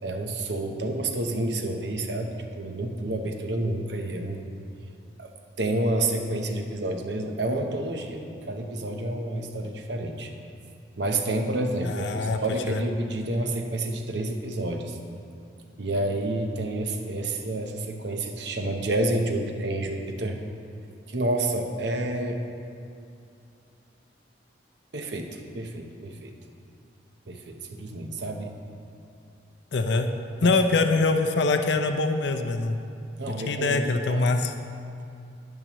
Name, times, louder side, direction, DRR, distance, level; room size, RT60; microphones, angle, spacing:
voice 1, 0.0-4.4 5.2-10.3 11.0-15.0 15.8-20.4 21.1-22.4 24.9-26.3 27.3-28.5 30.4-30.5 33.2-34.3, right 1 dB, 70° right, 4 dB, 0.9 m, -29 dB
voice 2, 11.8-12.4 12.7-12.8 29.7-30.1 30.4-32.8 33.5-34.5, left 3 dB, 70° left, 6 dB, 0.6 m, -23 dB
11.0 x 10.5 x 3.1 m, 2.5 s
head